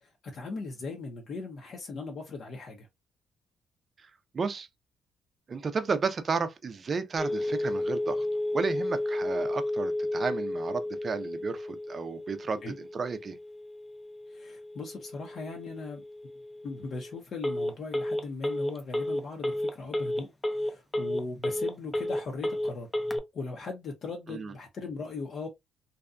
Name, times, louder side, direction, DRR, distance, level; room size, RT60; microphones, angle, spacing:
voice 1, 0.0-2.9 12.6-12.7 14.3-16.0 16.6-22.9 23.3-25.5, left 3 dB, 55° left, 0.6 m, -39 dB
voice 2, 4.0-4.7 5.5-8.3 8.5-13.4 24.3-24.5, right 5 dB, 40° right, 0.4 m, -33 dB
Telephone, 7.2-23.2, left 1 dB, 15° left, 0.5 m, -32 dB
2.6 x 2.2 x 2.4 m
cardioid pair, 90°, 0 cm